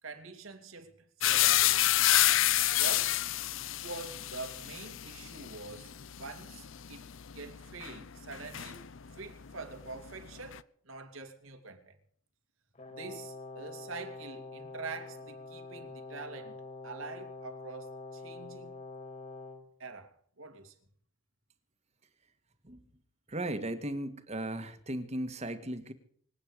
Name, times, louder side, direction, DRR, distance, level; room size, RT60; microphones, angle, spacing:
voice 1, 0.0-1.0 1.2-1.8 2.8-3.2 3.8-5.9 6.2-12.0 12.9-16.6 16.8-18.8 19.8-20.7, right 3 dB, 80° right, 2.7 m, -45 dB
sound 1, 1.2-9.2 9.5-10.6, left 14 dB, 65° left, 0.6 m, -29 dB
Brass instrument, 12.8-19.7, left 3 dB, 35° left, 3.5 m, -45 dB
voice 2, 23.3-25.9, right 1 dB, 30° right, 1.8 m, -36 dB
25.5 x 9.2 x 5.1 m
head